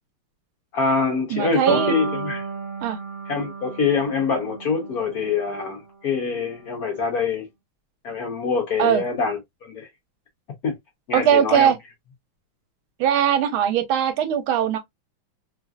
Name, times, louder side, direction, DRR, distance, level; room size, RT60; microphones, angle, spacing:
voice 1, 0.7-2.4 3.3-7.5 8.0-9.9 10.6-10.7 11.1-11.7, left 5 dB, 65° left, 0.9 m, -25 dB
voice 2, 1.3-1.9 2.8-3.0 8.8-9.0 11.1-11.8 13.0-14.8, right 9 dB, 85° right, 1.4 m, -20 dB
sound 1, 1.7-5.8, right 4 dB, 55° right, 1.2 m, -32 dB
3.3 x 2.4 x 2.2 m
omnidirectional pair, 2.3 m